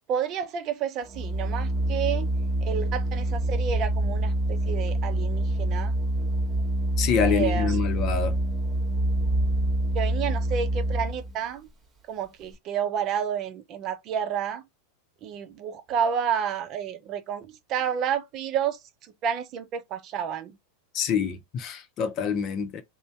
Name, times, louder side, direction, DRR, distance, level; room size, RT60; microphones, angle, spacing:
voice 1, 0.1-2.3 2.6-5.9 7.3-7.8 9.9-11.7 12.1-14.6 15.2-18.8 19.2-20.6, right 8 dB, 45° right, 0.6 m, -30 dB
Organ, 1.0-11.3, right 1 dB, 25° right, 1.3 m, -26 dB
voice 2, 7.0-8.3 20.9-22.8, left 7 dB, 45° left, 0.7 m, -26 dB
2.7 x 2.2 x 3.2 m
hypercardioid pair, 100°, 0 cm